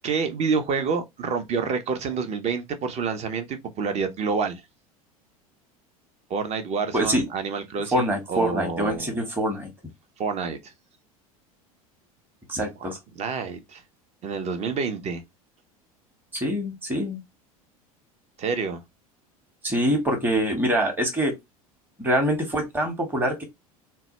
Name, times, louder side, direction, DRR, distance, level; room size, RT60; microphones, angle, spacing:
voice 1, 0.0-4.6 6.3-9.1 10.2-10.7 13.2-13.8 14.2-15.2 18.4-18.8, right 5 dB, 35° right, 0.8 m, -28 dB
voice 2, 6.9-7.2 7.9-9.7 12.5-13.0 16.3-17.2 19.6-21.3 22.0-23.4, equal, 10° right, 1.1 m, -24 dB
3.9 x 2.3 x 2.9 m
figure-of-eight pair, 75°, 19 cm